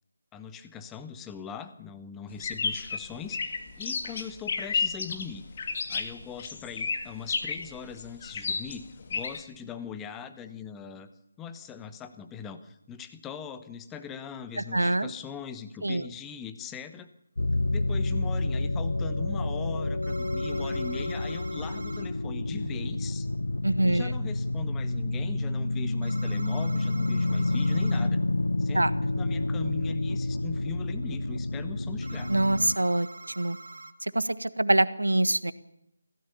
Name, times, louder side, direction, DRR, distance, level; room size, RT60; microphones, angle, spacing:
voice 1, 0.3-5.4 5.9-8.8 9.1-11.1 11.4-17.1 17.7-23.3 23.9-28.2 28.6-32.3, left 7 dB, 10° left, 10 dB, 1.1 m, -41 dB
sound 1, 2.4-9.4, left 5 dB, 35° left, 2.2 m, -32 dB
voice 2, 14.7-15.1 15.8-16.0 23.6-24.1 28.7-28.9 32.3-33.1 33.4-33.6 34.0-35.5, right 1 dB, 70° right, 14 dB, 1.4 m, -24 dB
sound 2, 17.4-32.8, left 2 dB, 65° left, 0.8 m, -29 dB
sound 3, 20.0-22.1 26.0-28.1 32.0-33.9, right 2 dB, 55° right, 2.1 m, -45 dB
25.5 x 16.5 x 7.0 m, 0.83 s
figure-of-eight pair, 155°, 0 cm